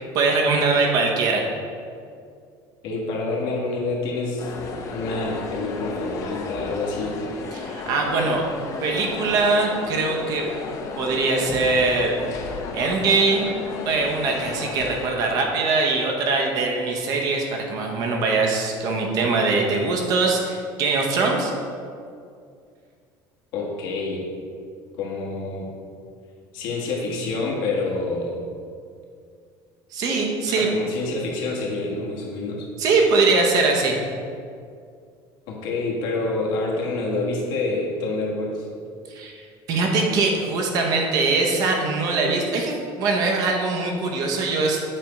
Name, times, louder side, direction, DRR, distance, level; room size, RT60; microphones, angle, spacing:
voice 1, 0.1-1.5 7.5-8.4 8.8-10.5 11.0-12.1 12.7-13.5 13.9-21.5 29.9-30.7 32.8-34.0 39.1-45.0, right 3 dB, 40° right, 1 dB, 0.8 m, -22 dB
voice 2, 2.8-4.5 4.9-7.2 23.5-24.2 25.0-25.7 26.5-28.3 30.5-32.7 35.5-38.7, left 3 dB, 60° left, -3 dB, 1.4 m, -27 dB
sound 1, 4.4-15.1, left 4 dB, 35° left, 0.6 m, -33 dB
7.5 x 3.4 x 5.2 m, 2.3 s
cardioid pair, 175°, 9 cm